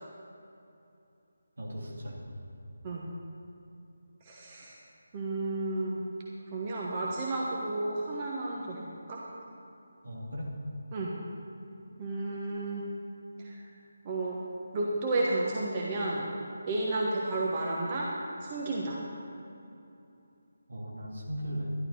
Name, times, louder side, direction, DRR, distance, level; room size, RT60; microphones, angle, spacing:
voice 1, 1.6-2.4 10.0-10.6 20.7-21.7, equal, 65° right, -3 dB, 2.7 m, -37 dB
voice 2, 4.2-4.7 5.1-6.0 6.5-8.8 9.1-9.2 10.9-11.1 12.0-12.8 13.4-13.6 14.0-14.4 14.7-16.3 16.7-18.1 18.4-19.0, right 2 dB, 25° right, -4 dB, 1.3 m, -32 dB
12.0 x 11.5 x 4.4 m, 2.8 s
figure-of-eight pair, 155°, 0 cm